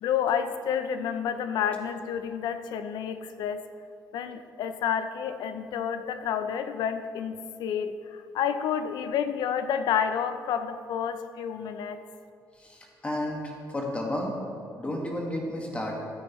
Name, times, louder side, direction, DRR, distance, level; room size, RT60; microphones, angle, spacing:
voice 1, 0.0-3.6 4.1-7.3 7.6-12.0, left 8 dB, 85° left, 9 dB, 0.6 m, -29 dB
voice 2, 12.6-14.4 14.8-16.0, left 1 dB, 20° left, -1 dB, 1.8 m, -32 dB
13.5 x 9.1 x 3.2 m, 2.4 s
cardioid pair, 125°, 7 cm